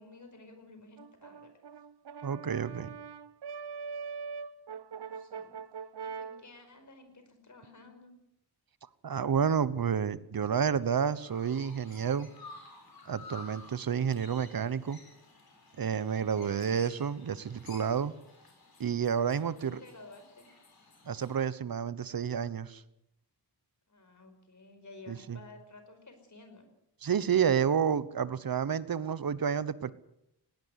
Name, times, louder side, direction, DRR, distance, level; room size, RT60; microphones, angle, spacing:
voice 1, 0.0-1.5 5.0-5.6 6.0-8.2 19.3-20.5 23.9-26.7, left 3 dB, 45° left, 7 dB, 5.1 m, -53 dB
Brass instrument, 1.0-6.4, right 5 dB, 85° right, 0.8 m, -42 dB
voice 2, 2.2-2.9 9.0-12.3 13.1-15.0 15.8-18.1 18.8-19.8 21.1-22.8 25.1-25.4 27.0-29.9, right 7 dB, 60° right, 16 dB, 1.1 m, -30 dB
Chirp tweet, 10.8-21.4, left 3 dB, 65° left, 6.9 m, -53 dB
20.0 x 18.5 x 8.2 m, 0.83 s
wide cardioid pair, 130°, 40 cm